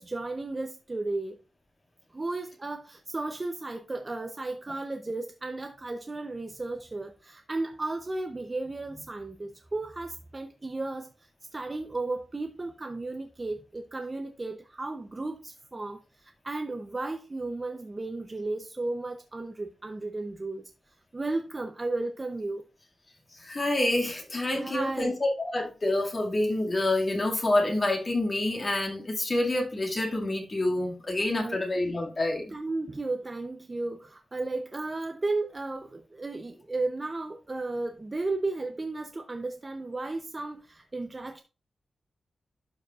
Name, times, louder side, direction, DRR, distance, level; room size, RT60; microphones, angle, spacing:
voice 1, 0.0-1.4 2.1-20.6 21.1-22.6 24.5-25.2 31.4-31.6 32.5-41.4, right 2 dB, 25° right, 0.6 m, -34 dB
voice 2, 23.4-32.6, left 1 dB, 30° left, 2.0 m, -27 dB
11.5 x 5.0 x 2.4 m
wide cardioid pair, 125°, 0 cm